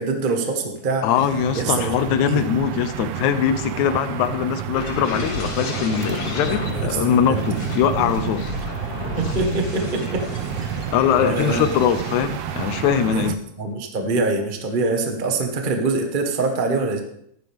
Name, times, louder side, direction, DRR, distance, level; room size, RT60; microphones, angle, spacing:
voice 1, 0.0-1.1 1.5-1.9 2.3-2.4 6.4-6.9 9.2-10.2 10.6-10.8 11.2-11.6 13.1-13.2 13.6-17.0, right 3 dB, 45° right, 3 dB, 0.6 m, -24 dB
voice 2, 1.0-8.8 10.9-13.4, left 9 dB, 75° left, 9 dB, 2.1 m, -22 dB
sound 1, 1.2-13.4, right 11 dB, 80° right, 1.5 m, -30 dB
sound 2, 4.7-13.2 13.6-13.9, left 2 dB, 50° left, 3.4 m, -32 dB
15.0 x 11.5 x 3.6 m, 0.73 s
omnidirectional pair, 3.5 m